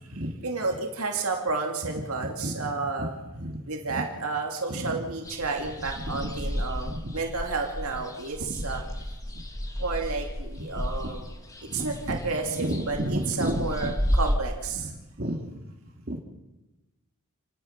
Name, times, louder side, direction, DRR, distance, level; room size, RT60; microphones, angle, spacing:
voice 1, 0.4-3.1 3.7-8.8 9.8-11.3 11.7-14.9, right 3 dB, 75° right, 2 dB, 2.5 m, -31 dB
voice 2, 2.0-2.7 3.0-3.6 3.9-4.0 4.7-5.0 6.0-6.5 6.8-7.1 8.4-8.8 10.7-11.2 11.7-13.9 14.7-15.6 16.1-16.2, equal, 45° right, 2 dB, 2.9 m, -33 dB
sound 1, 5.2-14.4, equal, 15° left, 2.0 m, -33 dB
29.0 x 18.0 x 5.9 m, 1.1 s
head